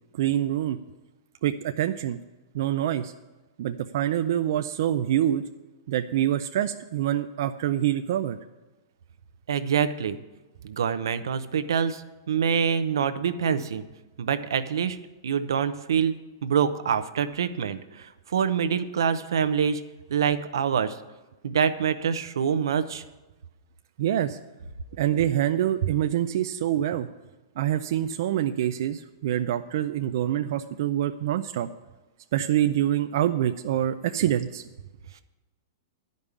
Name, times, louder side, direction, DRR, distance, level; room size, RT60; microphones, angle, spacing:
voice 1, 0.2-0.8 1.4-2.2 2.5-3.1 3.6-5.4 5.9-8.4 24.0-24.4 25.0-27.1 27.6-31.7 32.3-34.6, right 11 dB, 60° right, 8 dB, 0.4 m, -25 dB
voice 2, 9.5-10.2 10.6-12.0 12.3-13.8 14.2-15.0 15.2-16.2 16.4-19.8 20.1-21.0 21.4-23.0, right 7 dB, 90° right, 11 dB, 0.7 m, -25 dB
11.0 x 5.3 x 8.3 m, 1.1 s
hypercardioid pair, 150°, 2 cm